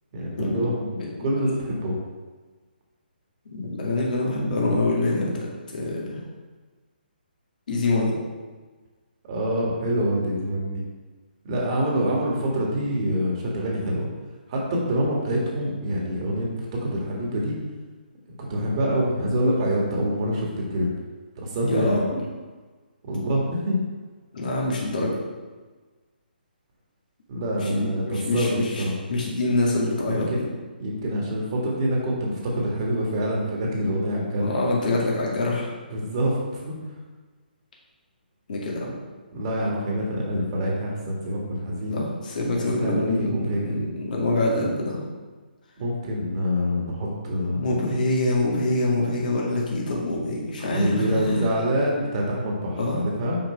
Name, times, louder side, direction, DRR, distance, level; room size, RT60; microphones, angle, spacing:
voice 1, 0.1-2.0 9.2-10.8 11.4-14.1 14.5-17.5 18.5-20.9 21.4-22.1 23.0-23.8 27.3-28.5 28.8-28.9 30.1-30.4 30.8-34.5 35.9-36.8 39.3-42.0 42.6-43.8 45.8-47.6 50.7-53.4, equal, 35° right, -3 dB, 1.9 m, -26 dB
voice 2, 1.2-1.5 3.5-6.2 7.7-8.1 21.6-22.2 24.3-25.2 27.6-30.4 34.4-35.7 38.5-38.9 41.9-45.0 47.5-51.6 52.8-53.0, left 2 dB, 55° left, -3 dB, 2.2 m, -25 dB
5.9 x 5.3 x 4.5 m, 1.3 s
figure-of-eight pair, 140°, 5 cm